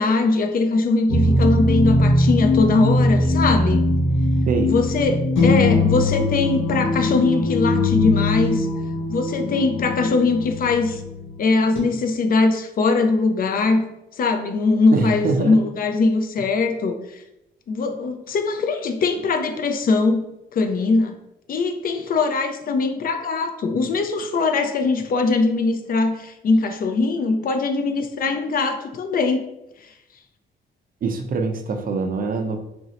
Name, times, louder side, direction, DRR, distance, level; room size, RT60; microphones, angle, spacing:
voice 1, 0.0-3.8 4.6-8.7 9.1-11.0 11.4-17.2 17.7-20.2 20.5-21.2 21.5-29.4, left 3 dB, 45° left, 7 dB, 0.4 m, -21 dB
sound 1, 1.1-11.8, left 1 dB, 75° left, 0.7 m, -21 dB
voice 2, 14.9-15.6 31.0-32.6, right 4 dB, 45° right, 5 dB, 0.4 m, -23 dB
2.5 x 2.0 x 3.9 m, 0.87 s
cardioid pair, 90°, 20 cm